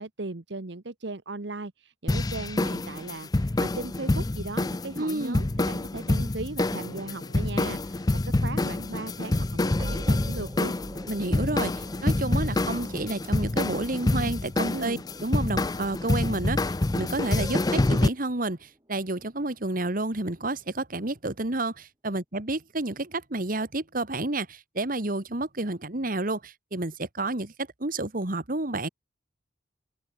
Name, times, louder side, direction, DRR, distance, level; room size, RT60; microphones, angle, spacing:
voice 1, 0.0-10.7 14.7-15.0, right 2 dB, 65° right, 1.2 m, -37 dB
sound 1, 2.1-18.1, left 2 dB, 20° left, 0.5 m, -27 dB
voice 2, 4.9-5.4 11.1-28.9, right 2 dB, 50° right, 1.9 m, -30 dB
groan with echo, 6.6-9.1, left 1 dB, 75° left, 6.4 m, -50 dB
sound 2, 8.0-19.0, equal, 20° right, 7.0 m, -45 dB
head